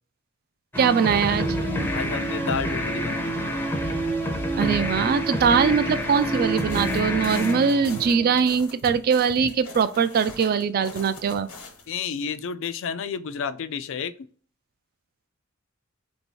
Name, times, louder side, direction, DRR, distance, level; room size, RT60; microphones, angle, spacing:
sound 1, 0.7-8.5, equal, 10° left, 0.5 m, -27 dB
voice 1, 0.8-1.6 4.6-11.5, right 6 dB, 45° right, 0.3 m, -22 dB
voice 2, 1.9-3.4 11.9-14.1, left 6 dB, 60° left, 0.4 m, -30 dB
sound 2, 3.3-8.3, right 1 dB, 65° right, 0.9 m, -49 dB
sound 3, 6.1-11.9, left 3 dB, 90° left, 1.2 m, -43 dB
3.1 x 2.7 x 4.5 m
head